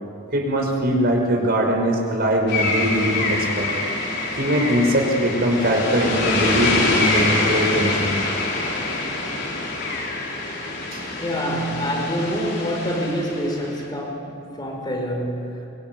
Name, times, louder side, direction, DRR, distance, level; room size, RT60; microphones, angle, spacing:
voice 1, 0.3-3.7 4.4-8.2 10.9-11.0, equal, 50° right, 1 dB, 5.4 m, -21 dB
sound 1, 2.5-13.8, left 2 dB, 55° left, 6.0 m, -25 dB
voice 2, 11.2-15.7, equal, 20° left, 1 dB, 5.3 m, -26 dB
24.5 x 24.5 x 9.4 m, 2.8 s
head